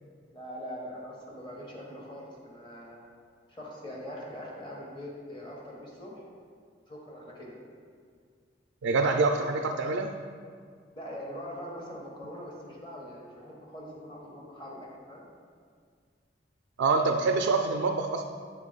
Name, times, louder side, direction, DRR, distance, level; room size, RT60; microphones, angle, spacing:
voice 1, 0.3-3.0 3.5-6.2 6.9-7.6 10.9-15.2, equal, 25° left, -4 dB, 1.1 m, -42 dB
voice 2, 8.8-10.2 16.8-18.2, right 3 dB, 85° right, 3 dB, 0.3 m, -26 dB
7.9 x 3.7 x 3.9 m, 2.1 s
head